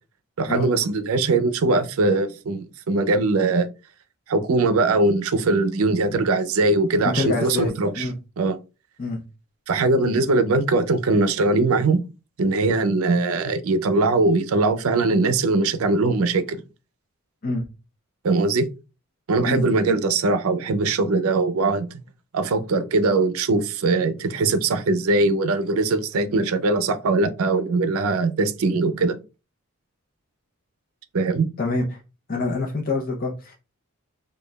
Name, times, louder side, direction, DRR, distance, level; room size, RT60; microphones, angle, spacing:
voice 1, 0.4-3.7 4.3-8.1 8.4-8.6 9.7-12.0 12.4-16.6 18.2-18.7 19.3-21.9 22.3-29.2 31.1-31.5, right 3 dB, 80° right, 0.5 m, -21 dB
voice 2, 7.0-8.1 9.0-9.2 17.4-17.6 19.4-20.0 31.6-32.0 32.3-33.5, left 3 dB, 40° left, 0.6 m, -26 dB
4.9 x 2.3 x 2.2 m
head